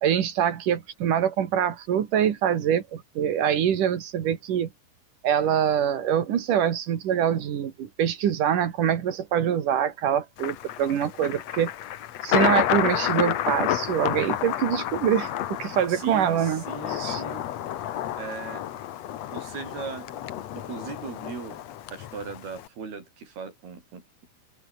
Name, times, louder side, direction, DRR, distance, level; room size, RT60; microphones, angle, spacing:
voice 1, 0.0-4.7 5.2-11.7 12.2-16.6 16.9-17.2, right 9 dB, 60° right, 3.3 m, -24 dB
Thunder, 10.4-22.7, left 12 dB, 60° left, 1.8 m, -30 dB
voice 2, 15.9-17.5 18.2-18.6 19.2-20.1 20.5-21.6 21.9-24.0, right 5 dB, 85° right, 7.6 m, -38 dB
omnidirectional pair, 4.3 m